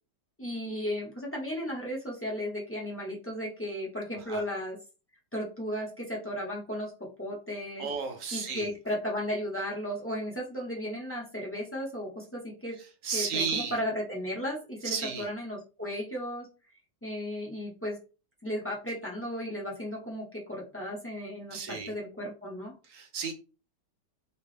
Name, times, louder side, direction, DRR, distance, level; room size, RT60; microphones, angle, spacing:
voice 1, 0.4-4.8 5.3-7.9 8.3-12.8 13.1-16.5 17.0-18.0 18.4-22.7, equal, 20° left, -3 dB, 0.3 m, -35 dB
voice 2, 7.8-8.7 13.0-13.8 14.8-15.2 21.5-21.9 22.9-23.3, right 5 dB, 60° right, 4 dB, 1.0 m, -33 dB
4.4 x 2.1 x 3.1 m, 0.33 s
omnidirectional pair, 1.8 m